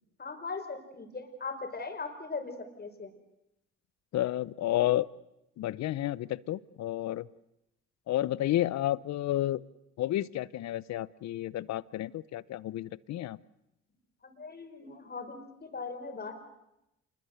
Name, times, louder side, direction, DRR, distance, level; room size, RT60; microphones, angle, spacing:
voice 1, 0.2-3.1 14.2-16.3, left 4 dB, 35° left, 6 dB, 5.3 m, -39 dB
voice 2, 4.1-5.1 5.6-7.3 8.1-9.6 10.0-13.4, left 14 dB, 65° left, 20 dB, 0.8 m, -31 dB
27.0 x 21.5 x 8.0 m, 0.86 s
supercardioid pair, 75°, 29 cm